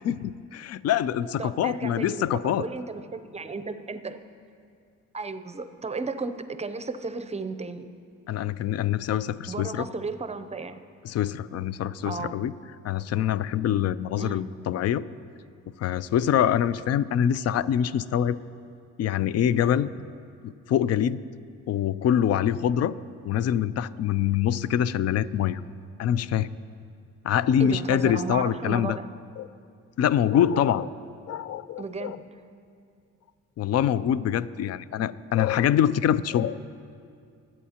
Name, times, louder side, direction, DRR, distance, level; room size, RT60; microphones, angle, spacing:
voice 1, 0.0-2.6 8.3-9.9 11.0-12.5 12.8-15.0 15.8-18.4 19.0-19.9 20.4-21.2 21.7-22.9 23.2-25.6 26.0-26.5 27.2-29.0 29.4-29.5 30.0-30.9 31.3-32.2 33.6-36.6, left 10 dB, 55° left, 17 dB, 0.4 m, -25 dB
voice 2, 1.4-4.2 5.1-7.8 9.5-10.8 12.0-12.4 14.2-14.5 27.6-29.1 31.8-32.3, right 4 dB, 20° right, 11 dB, 0.6 m, -34 dB
22.0 x 8.6 x 2.9 m, 2.4 s
cardioid pair, 90°, 30 cm